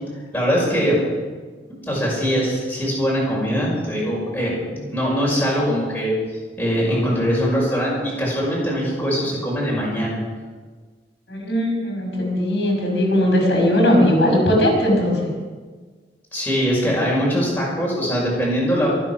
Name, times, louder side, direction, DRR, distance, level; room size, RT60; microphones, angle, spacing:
voice 1, 0.3-1.0 1.9-6.1 6.6-10.2 16.3-18.9, equal, 10° left, -5 dB, 6.1 m, -22 dB
voice 2, 11.3-15.3, left 1 dB, 85° left, -1 dB, 5.8 m, -18 dB
24.0 x 9.6 x 6.1 m, 1.5 s
head